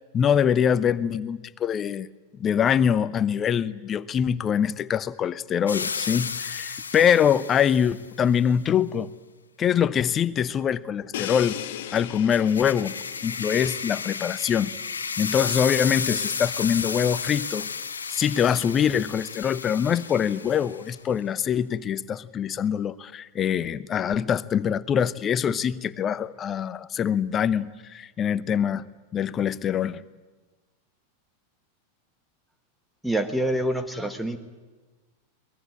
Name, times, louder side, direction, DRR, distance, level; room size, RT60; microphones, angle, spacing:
voice 1, 0.1-2.1 2.4-9.1 9.6-11.6 11.9-12.9 13.2-14.7 15.2-17.7 18.1-28.9 29.1-30.0, left 8 dB, 25° left, 18 dB, 0.8 m, -24 dB
sound 1, 5.7-8.0 11.9-20.9, left 5 dB, 70° left, 1.4 m, -32 dB
Crash cymbal, 11.1-14.9, left 11 dB, 55° left, 1.4 m, -38 dB
voice 2, 33.0-34.4, right 1 dB, ahead, 8 dB, 1.4 m, -26 dB
22.5 x 19.5 x 8.8 m, 1.3 s
figure-of-eight pair, 90°, 0 cm